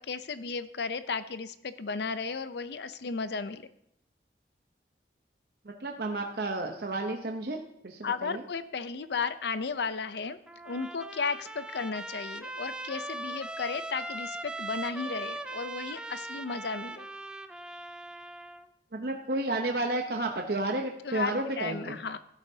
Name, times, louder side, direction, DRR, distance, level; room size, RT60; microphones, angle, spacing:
voice 1, 0.0-3.7 8.0-10.4 10.6-17.1 21.0-22.2, left 5 dB, 75° left, 13 dB, 0.6 m, -34 dB
voice 2, 5.6-7.6 7.8-8.4 18.9-22.0, right 2 dB, 60° right, 2 dB, 0.8 m, -32 dB
Trumpet, 10.5-18.7, right 2 dB, 5° right, 0.4 m, -40 dB
16.0 x 9.0 x 2.8 m, 0.75 s
head